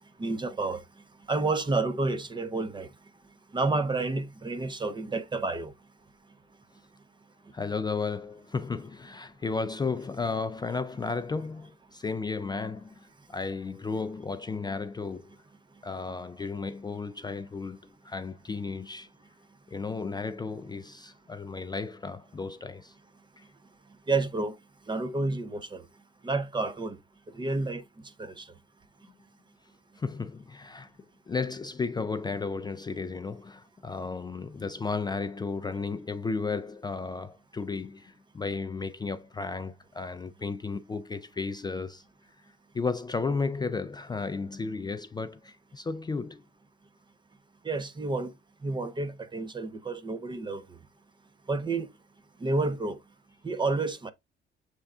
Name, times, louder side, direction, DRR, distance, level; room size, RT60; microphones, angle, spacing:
voice 1, 0.2-0.8 1.3-2.9 3.5-5.7 24.1-24.5 24.9-25.8 26.2-27.0 27.3-27.8 28.2-28.5 47.6-48.3 48.6-50.7 51.5-51.9 52.4-53.0 53.4-54.1, right 3 dB, 25° right, 0.6 m, -30 dB
voice 2, 7.5-15.3 15.8-17.8 18.0-19.1 19.7-22.9 23.4-23.5 30.0-30.9 31.3-42.0 42.7-46.4, left 4 dB, 20° left, 0.4 m, -34 dB
6.5 x 3.4 x 2.4 m
cardioid pair, 90°, 20 cm